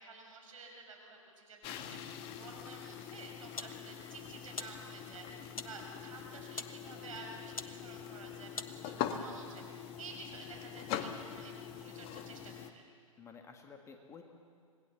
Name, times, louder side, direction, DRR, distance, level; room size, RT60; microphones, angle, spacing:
voice 1, 0.0-12.8, right 3 dB, 70° right, 2 dB, 5.9 m, -51 dB
sound 1, 1.6-12.7, left 9 dB, 30° left, 1.5 m, -43 dB
sound 2, 3.0-9.3, left 4 dB, 90° left, 1.2 m, -49 dB
voice 2, 13.2-14.2, left 6 dB, 15° left, 4 dB, 1.9 m, -53 dB
26.0 x 20.5 x 7.3 m, 2.2 s
hypercardioid pair, 120°, 18 cm